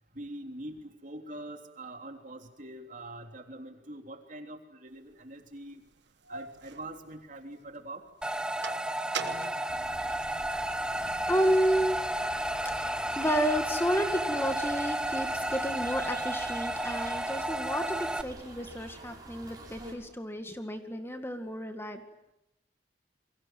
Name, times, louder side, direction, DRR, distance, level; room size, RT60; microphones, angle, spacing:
voice 1, 0.1-5.8 6.3-8.0, right 1 dB, 45° right, 4 dB, 3.5 m, -44 dB
sound 1, 5.1-5.2 5.9-7.7 8.1-10.7 11.2-12.9, right 6 dB, 75° right, 1.4 m, -43 dB
sound 2, 8.2-18.2, right 1 dB, 5° right, 1.1 m, -32 dB
sound 3, 9.7-20.0, right 1 dB, 20° right, 7.9 m, -47 dB
voice 2, 11.3-12.0 12.8-22.0, equal, 15° left, 6 dB, 2.1 m, -31 dB
30.0 x 23.5 x 7.8 m, 0.84 s
head